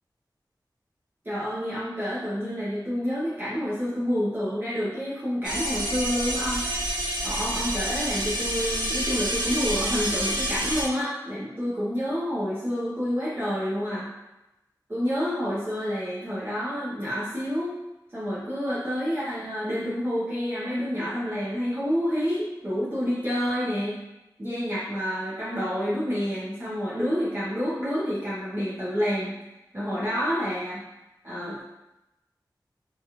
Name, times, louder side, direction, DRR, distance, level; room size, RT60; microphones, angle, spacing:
voice 1, 1.2-6.7 7.2-14.1 14.9-17.8 18.1-24.0 24.4-29.4 29.7-30.8 31.2-31.6, equal, 30° right, -10 dB, 0.9 m, -28 dB
sound 1, 5.4-10.8, equal, 85° right, 1.1 m, -28 dB
3.2 x 2.4 x 2.9 m, 0.96 s
wide cardioid pair, 60°, 8 cm